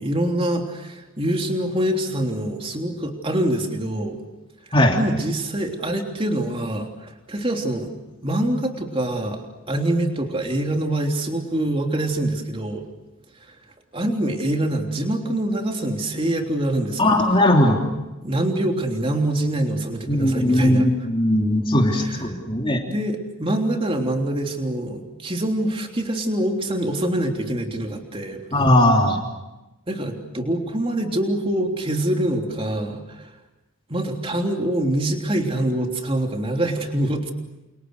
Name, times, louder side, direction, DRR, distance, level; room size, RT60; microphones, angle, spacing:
voice 1, 0.0-4.2 5.0-7.9 8.2-12.8 13.5-13.6 13.9-17.1 18.2-20.8 22.9-28.4 29.9-33.3 33.9-37.3, right 1 dB, 25° right, 3 dB, 3.3 m, -25 dB
voice 2, 17.0-17.8 20.1-22.8 28.5-29.2, left 1 dB, 25° left, 1 dB, 3.2 m, -18 dB
29.5 x 29.0 x 6.5 m, 1.0 s
head